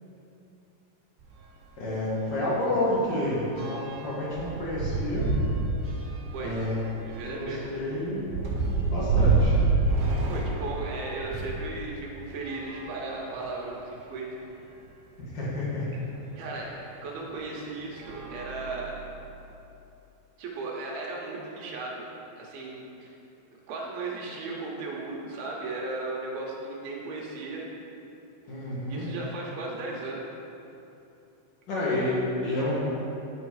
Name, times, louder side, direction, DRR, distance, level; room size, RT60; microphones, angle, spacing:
sound 1, 1.2-1.4 1.7-1.8 2.2-11.7 12.4-13.7 14.4-14.5 14.8-14.9 16.5-16.7 17.3-17.5 18.0-19.2, right 3 dB, 50° right, 1.7 m, -29 dB
voice 1, 1.8-5.3 6.4-6.8 7.2-8.3 8.9-9.6 15.2-15.8 28.5-29.1 31.7-32.8, left 1 dB, 65° left, -7 dB, 1.1 m, -29 dB
voice 2, 7.1-7.7 10.3-14.4 16.4-16.7 17.0-18.9 20.4-22.1 22.4-23.1 23.7-27.7 28.9-30.2, right 3 dB, 70° right, -3 dB, 2.6 m, -36 dB
9.5 x 6.9 x 4.8 m, 2.8 s
omnidirectional pair, 5.1 m